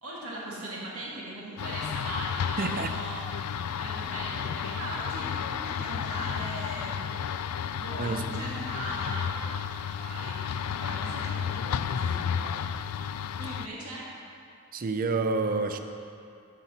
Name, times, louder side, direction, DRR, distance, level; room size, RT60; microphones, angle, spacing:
voice 1, 0.0-3.2 3.8-7.0 7.7-9.5 9.8-10.4 10.7-12.6 13.4-14.1, right 1 dB, 70° right, -6 dB, 1.9 m, -39 dB
sound 1, 1.6-13.7, left 7 dB, 80° left, 0.4 m, -32 dB
voice 2, 2.6-3.0 8.0-8.4 14.7-15.8, right 3 dB, 40° right, 7 dB, 0.5 m, -29 dB
15.5 x 5.9 x 4.1 m, 2.5 s
head